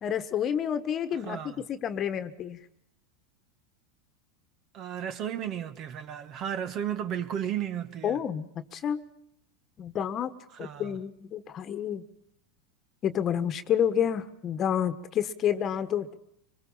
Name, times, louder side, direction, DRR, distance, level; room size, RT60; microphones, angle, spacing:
voice 1, 0.0-2.6 8.0-9.0 9.8-10.3 10.6-12.0 13.0-16.2, left 9 dB, 35° left, 1.4 m, -29 dB
voice 2, 1.1-1.6 4.7-8.2 10.5-11.0, right 9 dB, 40° right, 1.5 m, -34 dB
25.0 x 22.0 x 5.6 m
supercardioid pair, 115°, 0 cm